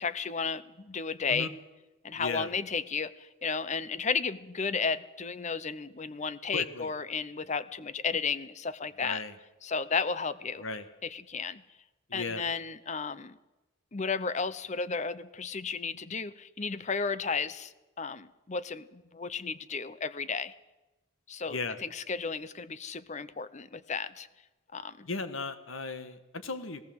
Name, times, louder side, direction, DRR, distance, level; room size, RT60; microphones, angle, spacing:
voice 1, 0.0-1.5 2.0-9.2 9.6-10.6 11.0-11.6 12.1-13.4 13.9-20.5 21.3-24.3 24.7-25.1, left 5 dB, 35° left, 16 dB, 0.8 m, -33 dB
voice 2, 2.1-2.5 6.5-6.9 9.0-9.3 10.6-10.8 12.1-12.4 21.5-21.8 25.1-26.8, left 3 dB, 75° left, 11 dB, 1.6 m, -36 dB
19.5 x 18.0 x 7.9 m, 1.1 s
head